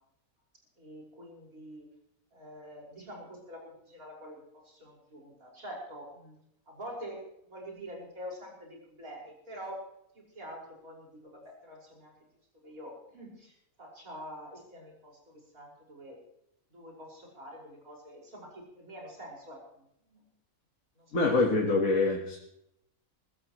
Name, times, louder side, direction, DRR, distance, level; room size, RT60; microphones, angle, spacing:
voice 1, 0.8-1.9 2.3-6.4 6.7-7.2 7.5-9.8 10.1-12.1 12.6-16.2 16.7-20.3 21.0-21.4, equal, 70° right, -3 dB, 5.9 m, -46 dB
voice 2, 21.1-22.4, left 3 dB, 65° left, 0 dB, 2.1 m, -25 dB
22.5 x 14.5 x 3.1 m, 0.78 s
omnidirectional pair, 1.6 m